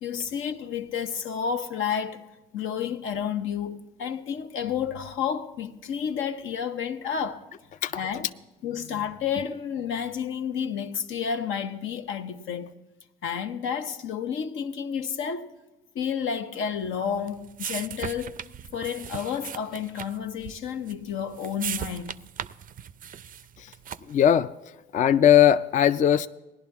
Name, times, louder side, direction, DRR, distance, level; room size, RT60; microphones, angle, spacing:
voice 1, 0.0-2.2 2.5-7.5 7.9-8.3 8.6-12.7 13.2-15.5 15.9-18.4 18.7-22.2, left 7 dB, 85° left, 0.9 m, -31 dB
sound 1, 16.8-24.3, right 9 dB, 45° right, 0.4 m, -38 dB
voice 2, 24.1-24.5 24.9-26.3, left 10 dB, 40° left, 0.4 m, -19 dB
17.5 x 11.0 x 3.5 m
cardioid pair, 90°, 20 cm